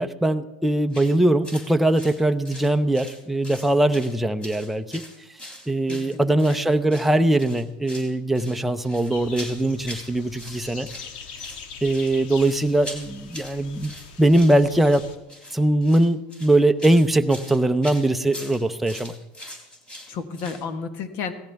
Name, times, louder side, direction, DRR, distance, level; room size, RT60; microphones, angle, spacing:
voice 1, 0.0-5.0 5.7-10.9 11.8-13.9 14.2-15.1 15.5-19.1, right 1 dB, 5° right, 6 dB, 0.6 m, -21 dB
sound 1, 0.9-1.1 1.4-1.7 1.9-3.2 3.4-4.1 4.4-6.6 6.9-7.1 7.4-8.1 8.3-10.1 10.4-11.1 11.4-20.6, left 1 dB, 20° left, 3.8 m, -41 dB
voice 2, 5.9-6.6 20.1-21.3, left 5 dB, 60° left, 9 dB, 1.5 m, -32 dB
sound 2, 9.1-15.2, left 6 dB, 80° left, 1.5 m, -42 dB
17.5 x 14.5 x 3.5 m, 0.97 s
supercardioid pair, 120°, 5 cm